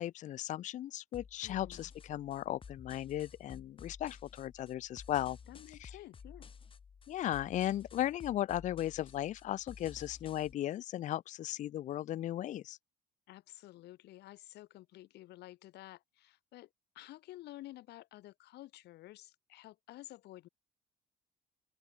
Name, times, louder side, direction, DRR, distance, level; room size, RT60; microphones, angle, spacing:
voice 1, 0.0-5.4 5.8-5.9 7.1-12.8, left 13 dB, 45° left, 0.4 m, -36 dB
sound 1, 1.1-10.5, left 6 dB, 30° left, 1.6 m, -53 dB
voice 2, 1.4-1.9 5.5-6.5 13.3-16.7 16.9-20.5, left 16 dB, 80° left, 5.8 m, -52 dB
open air
cardioid pair, 110°, 17 cm